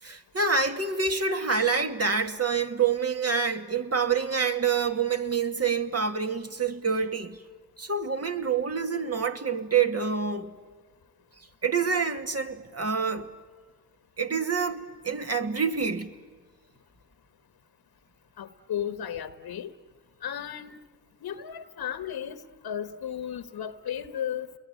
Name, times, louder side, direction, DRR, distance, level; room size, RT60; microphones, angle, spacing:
voice 1, 0.0-7.4 7.8-10.5 11.6-13.3 14.2-16.1, right 5 dB, 40° right, 2.5 m, -27 dB
voice 2, 18.4-19.7 20.2-20.8 21.2-24.5, left 9 dB, 80° left, 1.3 m, -34 dB
29.5 x 22.0 x 9.3 m
cardioid pair, 55°, 37 cm